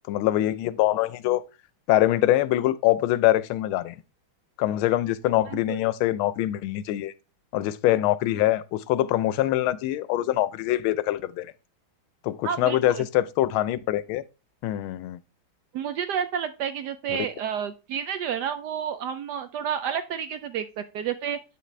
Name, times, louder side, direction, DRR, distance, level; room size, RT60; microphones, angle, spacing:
voice 1, 0.1-1.4 1.9-4.0 4.6-7.1 7.5-11.5 12.2-14.2 14.6-15.2 17.1-17.3, left 14 dB, 85° left, 1.4 m, -24 dB
voice 2, 5.5-5.8 12.4-13.1 15.7-21.4, right 8 dB, 75° right, 0.9 m, -30 dB
8.7 x 5.8 x 3.1 m
omnidirectional pair, 2.2 m